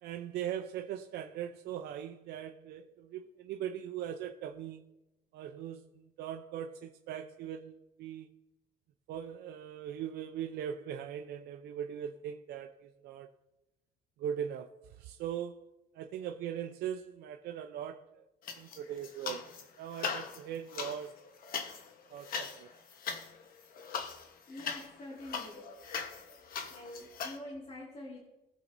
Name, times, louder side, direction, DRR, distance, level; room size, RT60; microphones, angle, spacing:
voice 1, 0.0-4.9 5.3-8.3 9.1-13.3 14.2-18.2 18.5-21.2 22.1-22.7, right 9 dB, 75° right, 0.6 m, -40 dB
sound 1, 18.4-19.6 19.9-27.4, left 6 dB, 60° left, 1.2 m, -40 dB
voice 2, 24.5-25.8 26.7-28.2, left 1 dB, 35° left, 2.2 m, -46 dB
19.0 x 7.2 x 2.7 m
cardioid pair, 110°, 17 cm